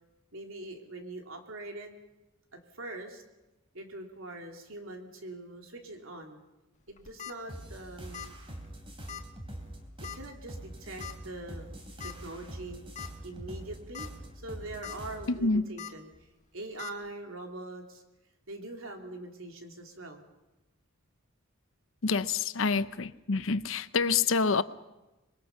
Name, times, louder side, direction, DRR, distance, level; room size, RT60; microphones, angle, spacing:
voice 1, 0.3-1.9 2.5-3.2 3.7-6.4 6.9-8.3 10.0-11.6 12.0-12.8 13.2-16.1 16.5-18.0 18.5-20.2, right 2 dB, 75° right, 3.0 m, -43 dB
sound 1, 6.9-7.3 8.1-8.4 8.6-8.7 9.1-9.2 10.0-10.3 11.0-11.1 12.0-12.1 12.6-12.7 13.0-13.1 13.8-14.1 14.5-15.0 15.8-15.9 16.8-16.9, left 9 dB, 35° left, 1.7 m, -41 dB
sound 2, 7.5-15.4, right 1 dB, 25° right, 3.2 m, -44 dB
voice 2, 15.3-15.6 22.0-24.6, left 4 dB, 70° left, 0.7 m, -27 dB
26.0 x 22.0 x 5.7 m
head